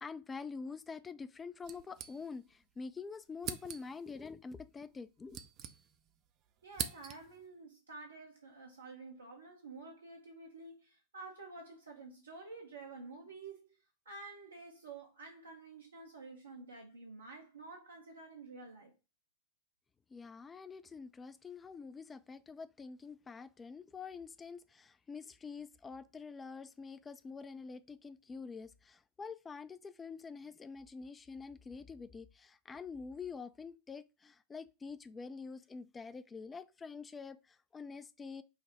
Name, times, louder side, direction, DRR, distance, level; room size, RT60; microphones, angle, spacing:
voice 1, 0.0-5.4 20.1-38.4, left 5 dB, 20° left, 0.4 m, -46 dB
sound 1, 1.6-2.6 2.9-3.0 3.4-4.1 4.9-6.2 6.5-7.4, right 9 dB, 40° right, 0.5 m, -43 dB
voice 2, 6.6-13.8 14.0-18.9, right 3 dB, 75° right, 0.9 m, -50 dB
5.6 x 2.1 x 4.1 m
figure-of-eight pair, 90°, 0 cm